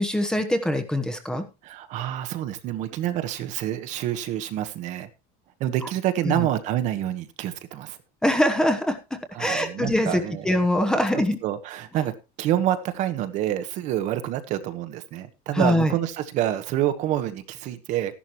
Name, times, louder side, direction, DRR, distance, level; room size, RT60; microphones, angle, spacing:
voice 1, 0.0-1.4 6.2-6.5 8.2-11.4 15.5-15.9, left 1 dB, 5° left, 1.1 m, -23 dB
voice 2, 1.6-5.1 5.6-8.0 9.3-10.5 11.1-12.1 12.4-18.1, right 12 dB, 40° right, 1.2 m, -27 dB
14.0 x 11.5 x 3.0 m
cardioid pair, 175°, 18 cm